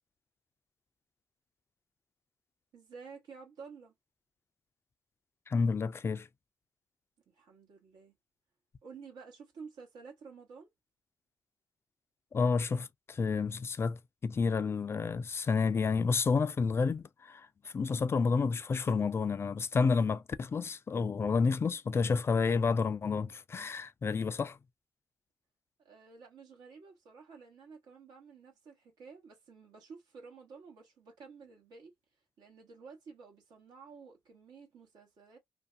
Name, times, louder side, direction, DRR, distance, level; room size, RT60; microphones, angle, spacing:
voice 1, 2.7-3.9 7.3-8.1 8.8-10.7 25.8-31.9 32.4-35.4, right 5 dB, 75° right, 0.9 m, -52 dB
voice 2, 5.5-6.3 12.3-24.6, left 5 dB, 35° left, 0.3 m, -30 dB
2.5 x 2.2 x 2.5 m
supercardioid pair, 55°, 7 cm